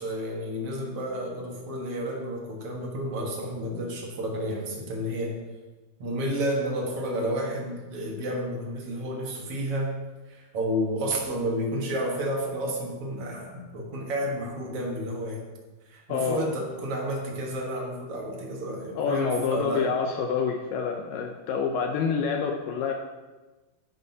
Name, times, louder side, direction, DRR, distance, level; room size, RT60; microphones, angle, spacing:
voice 1, 0.0-5.4 6.0-9.9 10.2-15.4 15.9-19.9, equal, 65° right, -1 dB, 1.5 m, -31 dB
voice 2, 16.1-16.4 19.0-22.9, left 6 dB, 85° left, 2 dB, 1.9 m, -27 dB
12.0 x 9.6 x 2.8 m, 1.2 s
omnidirectional pair, 4.8 m